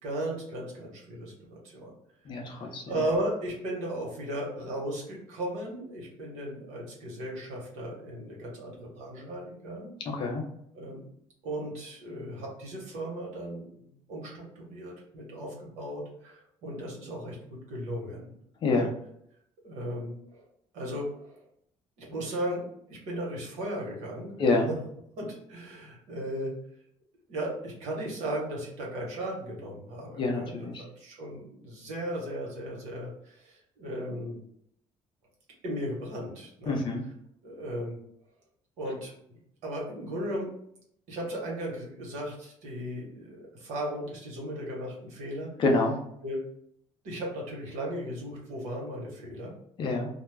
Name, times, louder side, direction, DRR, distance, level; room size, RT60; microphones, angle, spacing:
voice 1, 0.0-1.9 2.3-9.9 10.7-11.0 11.4-18.3 18.6-18.9 19.6-20.4 20.7-21.4 22.0-22.6 22.9-24.4 24.7-24.8 25.2-26.5 27.3-30.5 31.0-34.4 35.6-36.8 37.4-38.0 38.8-40.5 41.1-45.5 46.2-46.4 47.0-49.5, right 1 dB, 80° right, -2 dB, 1.0 m, -36 dB
voice 2, 2.3-2.8 10.1-10.4 18.6-18.9 24.4-24.7 30.2-30.8 36.7-37.0 45.6-45.9 49.8-50.1, left 3 dB, 40° left, 2 dB, 0.5 m, -26 dB
2.3 x 2.0 x 3.2 m, 0.71 s
cardioid pair, 155°, 12 cm